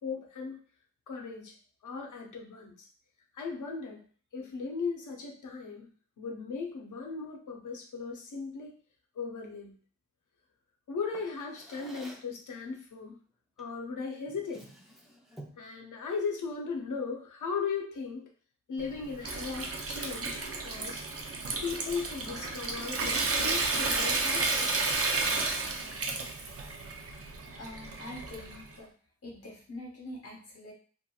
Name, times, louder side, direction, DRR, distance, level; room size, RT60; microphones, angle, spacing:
voice 1, 0.0-0.6 1.1-1.5 1.8-2.9 3.3-4.0 4.3-5.9 6.2-8.8 9.1-9.7 10.9-13.2 13.6-14.7 15.6-18.3 18.7-21.0 21.6-24.7, left 5 dB, 90° left, 2 dB, 0.7 m, -37 dB
Drawer open or close, 11.1-12.4 13.6-13.8 14.2-15.7, right 1 dB, ahead, 0.5 m, -50 dB
Water tap faucet / Sink (filling or washing) / Trickle dribble, 18.8-28.7, right 3 dB, 50° right, 0.5 m, -32 dB
voice 2, 27.5-28.9 29.2-30.7, left 1 dB, 55° left, -1 dB, 1.0 m, -44 dB
2.8 x 2.5 x 2.3 m, 0.42 s
wide cardioid pair, 115°, 30 cm